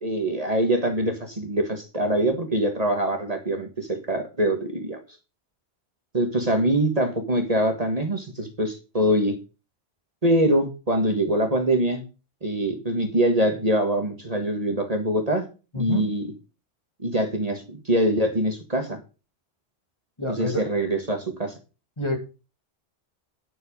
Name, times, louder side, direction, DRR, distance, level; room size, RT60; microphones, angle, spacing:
voice 1, 0.0-5.0 6.1-9.4 10.2-12.0 12.4-15.5 15.7-16.3 17.0-19.0 20.3-21.5, right 1 dB, 35° right, 4 dB, 1.8 m, -24 dB
voice 2, 15.7-16.1 20.2-20.6 22.0-22.2, left 1 dB, 25° left, 3 dB, 2.4 m, -27 dB
9.9 x 7.9 x 5.2 m, 0.32 s
omnidirectional pair, 1.1 m